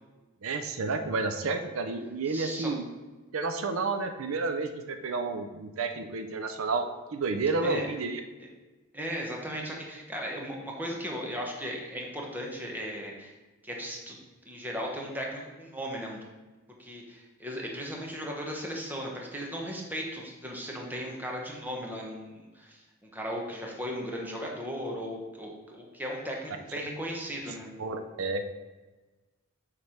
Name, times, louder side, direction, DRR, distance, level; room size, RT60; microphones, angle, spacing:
voice 1, 0.4-2.8 3.3-6.9 7.1-8.2 27.8-28.4, right 3 dB, 75° right, 7 dB, 0.5 m, -30 dB
voice 2, 2.2-2.7 7.6-7.9 8.4-8.5 8.9-13.3 13.6-14.1 14.4-16.2 16.8-27.7, equal, 10° right, -1 dB, 1.1 m, -37 dB
7.2 x 3.3 x 5.7 m, 1.2 s
head